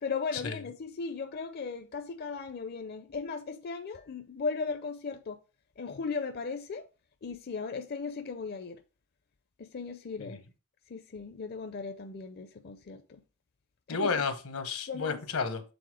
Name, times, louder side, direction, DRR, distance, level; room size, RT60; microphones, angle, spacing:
voice 1, 0.0-5.4 5.8-6.8 7.2-8.8 9.7-10.4 10.9-13.2 13.9-14.2 14.9-15.2, left 4 dB, 45° left, 0.5 m, -37 dB
voice 2, 13.9-15.6, left 5 dB, 85° left, 1.1 m, -32 dB
7.1 x 4.0 x 4.7 m
head